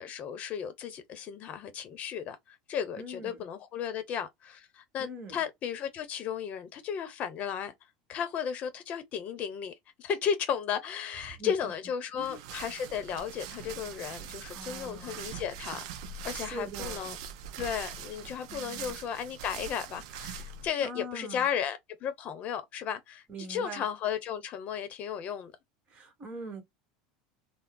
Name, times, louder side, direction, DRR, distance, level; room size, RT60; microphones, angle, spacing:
voice 1, 0.0-7.7 8.1-15.8 16.2-17.2 17.6-23.2 23.5-25.5, left 8 dB, 40° left, 0.8 m, -34 dB
voice 2, 3.0-3.5 5.0-5.4 11.4-11.7 12.1-12.4 14.5-15.3 16.3-17.2 18.5-19.0 20.8-21.5 23.3-23.8 25.9-26.6, right 2 dB, 30° right, 1.3 m, -42 dB
sound 1, 12.2-20.7, right 8 dB, 75° right, 0.4 m, -42 dB
3.5 x 2.0 x 2.2 m
supercardioid pair, 125°, 3 cm